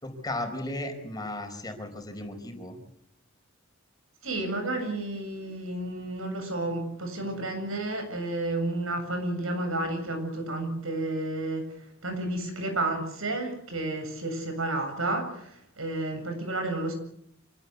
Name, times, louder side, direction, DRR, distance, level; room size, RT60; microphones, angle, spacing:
voice 1, 0.0-2.8, left 1 dB, 20° left, 5 dB, 4.8 m, -35 dB
voice 2, 4.2-11.6 12.0-16.9, right 2 dB, 80° right, 6 dB, 7.6 m, -31 dB
26.5 x 18.0 x 8.4 m, 0.72 s
head